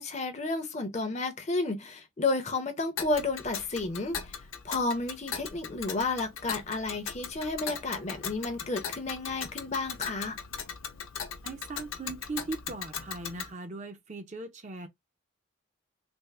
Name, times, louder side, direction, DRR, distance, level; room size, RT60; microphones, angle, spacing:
voice 1, 0.0-4.4 4.6-10.4, left 3 dB, 35° left, 0.6 m, -32 dB
Tick, 3.0-13.5, left 7 dB, 80° left, 0.6 m, -39 dB
voice 2, 11.4-14.9, right 3 dB, 35° right, 0.5 m, -39 dB
3.4 x 2.0 x 3.1 m
head